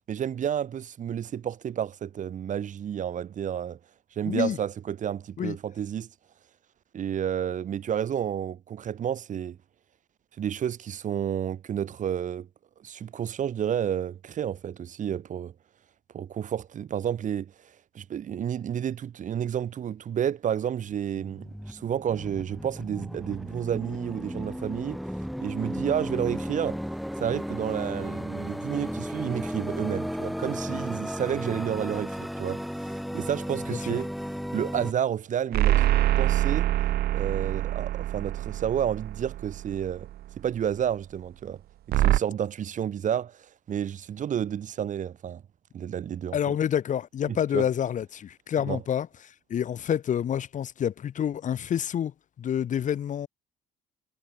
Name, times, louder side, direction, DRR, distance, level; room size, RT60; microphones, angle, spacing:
voice 1, 0.1-3.8 4.2-6.1 6.9-9.6 10.4-12.5 12.8-15.5 16.1-17.5 17.9-25.0 25.4-26.8 27.2-32.6 33.1-34.1 34.5-35.9 36.2-36.7 37.1-40.1 40.4-41.6 41.9-43.4 43.7-45.4 45.7-46.5 47.3-47.7 48.7-48.8, right 9 dB, 50° right, 2.3 m, -30 dB
voice 2, 4.2-4.6 5.4-5.6 33.7-34.0 46.3-53.3, left 9 dB, 50° left, 1.7 m, -28 dB
sound 1, 20.9-34.9, equal, ahead, 2.6 m, -34 dB
sound 2, 35.5-40.1 41.9-42.2, right 14 dB, 65° right, 1.1 m, -25 dB
cardioid pair, 110°, 17 cm